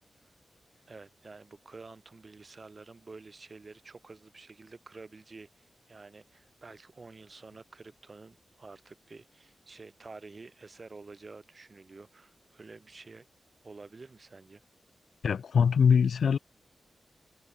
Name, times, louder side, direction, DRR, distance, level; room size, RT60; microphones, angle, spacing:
voice 1, 0.9-13.3 13.6-14.6, right 3 dB, 35° right, 1.5 m, -50 dB
voice 2, 15.2-16.4, left 6 dB, 80° left, 0.7 m, -23 dB
wide cardioid pair, 175°, 0 cm